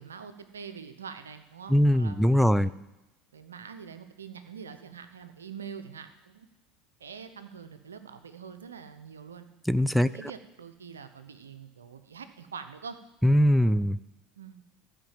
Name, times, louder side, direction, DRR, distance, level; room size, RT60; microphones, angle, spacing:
voice 1, 0.0-2.8 3.3-6.5 7.0-9.5 10.0-13.0 14.4-14.6, right 6 dB, 85° right, 9 dB, 0.8 m, -44 dB
voice 2, 1.7-2.7 9.7-10.1 13.2-14.0, equal, ahead, 14 dB, 0.4 m, -21 dB
13.0 x 5.2 x 7.4 m, 0.98 s
hypercardioid pair, 75°, 0 cm